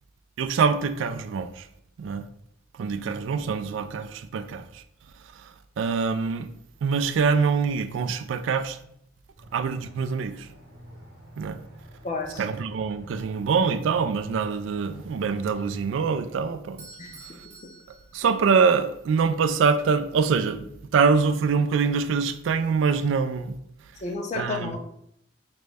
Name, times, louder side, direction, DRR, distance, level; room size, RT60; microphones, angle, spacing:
voice 1, 0.4-1.7 2.0-2.2 2.7-4.8 5.3-6.5 6.8-8.8 9.5-10.5 11.4-11.6 12.4-16.9 18.1-23.6 24.4-24.8, right 5 dB, 70° right, 0.3 m, -24 dB
Aircraft, 9.4-15.9, equal, 90° right, 0.9 m, -46 dB
voice 2, 12.0-12.4 17.0-17.4 24.0-24.8, left 3 dB, 35° left, 0.4 m, -32 dB
Bell / Doorbell, 16.8-18.9, right 4 dB, 30° right, 0.8 m, -49 dB
5.0 x 2.1 x 3.4 m
head